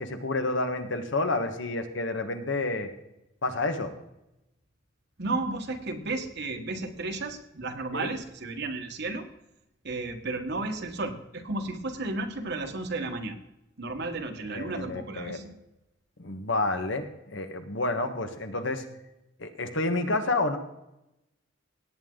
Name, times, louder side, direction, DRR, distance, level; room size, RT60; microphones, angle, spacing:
voice 1, 0.0-2.9 3.4-3.9 7.9-8.1 14.5-15.4 16.2-18.8 19.4-20.6, left 2 dB, 70° left, 7 dB, 1.5 m, -29 dB
voice 2, 5.2-9.3 9.8-13.4 13.8-15.5, right 2 dB, 60° right, 6 dB, 1.5 m, -33 dB
17.5 x 9.0 x 3.9 m, 0.89 s
head